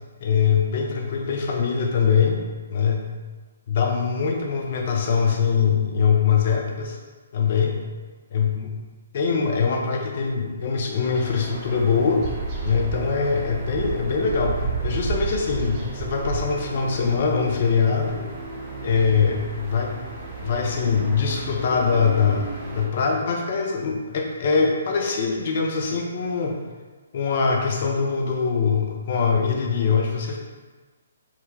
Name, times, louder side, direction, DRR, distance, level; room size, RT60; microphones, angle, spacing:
voice 1, 0.2-2.4 2.7-3.1 3.7-7.0 7.3-7.8 8.3-8.8 9.1-12.2 12.6-18.2 18.8-19.9 20.4-22.5 22.7-26.5 27.1-30.4, left 6 dB, 50° left, 2 dB, 0.5 m, -22 dB
sound 1, 11.0-22.8, right 4 dB, 35° right, 0.7 m, -32 dB
3.5 x 2.1 x 3.0 m, 1.3 s
figure-of-eight pair, 135°, 0 cm